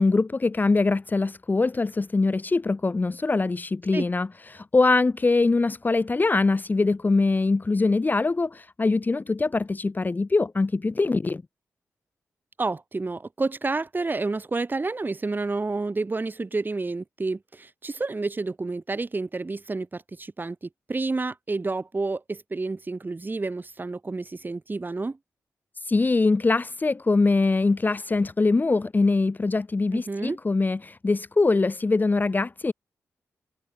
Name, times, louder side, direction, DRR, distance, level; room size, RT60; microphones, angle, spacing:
voice 1, 0.0-11.4 25.8-32.7, left 3 dB, 30° left, 1.0 m, -23 dB
voice 2, 12.6-25.2 29.9-30.4, right 3 dB, 35° right, 5.5 m, -29 dB
cardioid pair, 60°, 6 cm